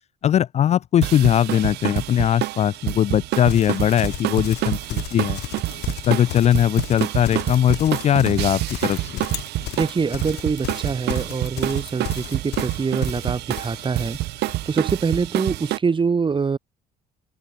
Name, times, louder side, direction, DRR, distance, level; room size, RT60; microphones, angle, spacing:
voice 1, 0.2-5.4 6.1-9.2, left 10 dB, 40° left, 0.4 m, -20 dB
sound 1, 1.0-15.8, right 17 dB, 80° right, 1.0 m, -28 dB
Livestock farm animals working animals, 3.4-14.6, left 16 dB, 80° left, 7.8 m, -35 dB
voice 2, 9.7-16.6, right 5 dB, 30° right, 3.9 m, -24 dB
open air
cardioid pair, 110°, 17 cm